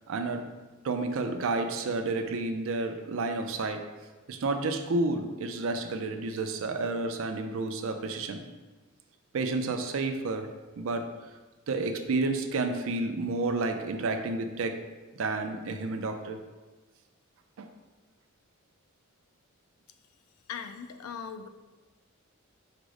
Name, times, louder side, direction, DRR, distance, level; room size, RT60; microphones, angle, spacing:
voice 1, 0.1-0.5 0.8-3.8 4.3-8.4 9.3-10.5 10.8-11.0 11.7-14.8 15.2-16.4 17.6-17.7, right 3 dB, 65° right, 6 dB, 0.4 m, -30 dB
voice 2, 20.5-21.5, left 7 dB, 85° left, 8 dB, 0.4 m, -39 dB
5.0 x 2.1 x 4.7 m, 1.2 s
head